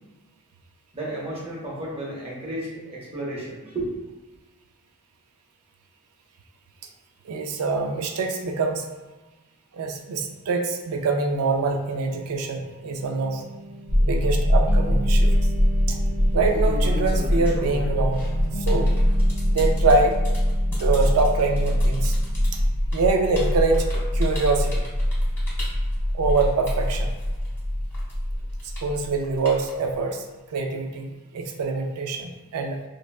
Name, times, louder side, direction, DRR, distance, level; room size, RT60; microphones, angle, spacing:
voice 1, 0.9-3.9, right 1 dB, 25° right, -5 dB, 0.7 m, -33 dB
voice 2, 7.3-8.9 9.7-13.4 14.0-15.3 15.9-16.0 16.3-19.0 19.5-20.2 20.7-22.2 22.9-23.9 24.1-24.8 26.1-27.1 28.8-30.2 30.5-32.8, right 3 dB, 75° right, 4 dB, 0.4 m, -24 dB
sound 1, 13.0-22.6, right 2 dB, 65° left, 0.7 m, -37 dB
sound 2, 13.9-29.6, equal, 25° left, 0.4 m, -23 dB
sound 3, 15.1-15.5 16.2-27.6 27.9-30.0, left 1 dB, 10° left, 0.8 m, -38 dB
3.2 x 2.2 x 2.3 m, 1.2 s
head